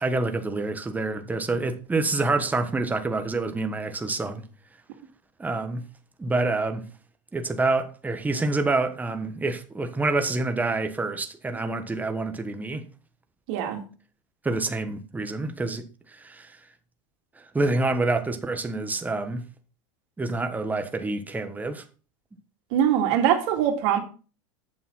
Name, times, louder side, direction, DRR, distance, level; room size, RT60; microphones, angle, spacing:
voice 1, 0.0-4.4 5.4-5.8 6.2-6.8 7.3-12.8 14.4-15.8 16.1-16.5 17.5-19.4 20.2-21.8, right 3 dB, 10° right, 1.3 m, -27 dB
voice 2, 13.5-13.8 22.7-24.0, right 9 dB, 65° right, 2.5 m, -22 dB
8.8 x 7.0 x 5.6 m
supercardioid pair, 120°, 16 cm